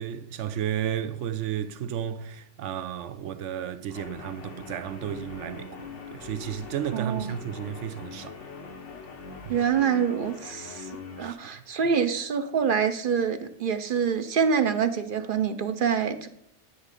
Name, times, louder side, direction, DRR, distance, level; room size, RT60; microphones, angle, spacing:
voice 1, 0.0-8.4 9.4-9.6 11.2-11.4, right 9 dB, 80° right, 1.0 m, -33 dB
Guitar, 3.9-11.3, left 5 dB, 90° left, 1.4 m, -42 dB
voice 2, 6.9-7.3 9.5-10.9 11.2-16.3, right 7 dB, 55° right, 0.7 m, -26 dB
9.7 x 3.6 x 6.6 m
omnidirectional pair, 1.2 m